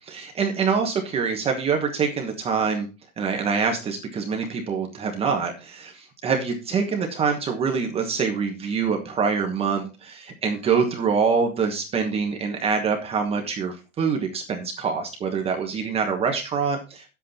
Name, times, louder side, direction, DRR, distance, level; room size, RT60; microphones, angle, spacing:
voice 1, 0.1-2.9 3.2-17.0, right 5 dB, 15° right, 3 dB, 1.2 m, -25 dB
10.0 x 8.1 x 4.2 m, 0.30 s
supercardioid pair, 165°, 43 cm